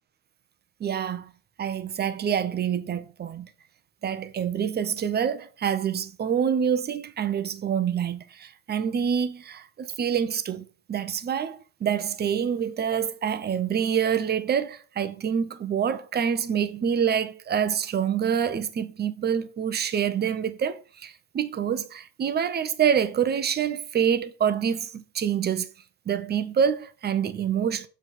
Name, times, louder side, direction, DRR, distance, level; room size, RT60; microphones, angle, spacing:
voice 1, 0.8-1.3 1.6-3.5 4.0-25.7 26.1-27.9, right 8 dB, 20° right, 0.6 m, -26 dB
7.1 x 4.0 x 5.8 m
cardioid pair, 130°, 50 cm